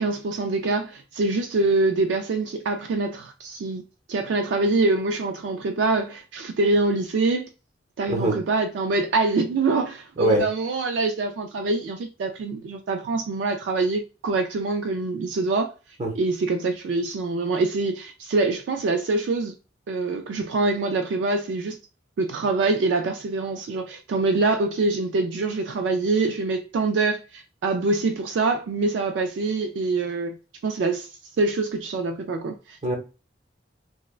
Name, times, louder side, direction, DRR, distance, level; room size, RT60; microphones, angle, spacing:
voice 1, 0.0-3.8 4.1-7.5 8.0-15.7 16.2-19.5 19.9-21.8 22.2-30.4 30.6-32.8, right 3 dB, 80° right, 0.3 m, -25 dB
voice 2, 8.1-8.4 10.2-10.4 16.0-16.1 32.8-33.0, right 1 dB, 40° right, 0.8 m, -22 dB
3.2 x 2.2 x 2.3 m
head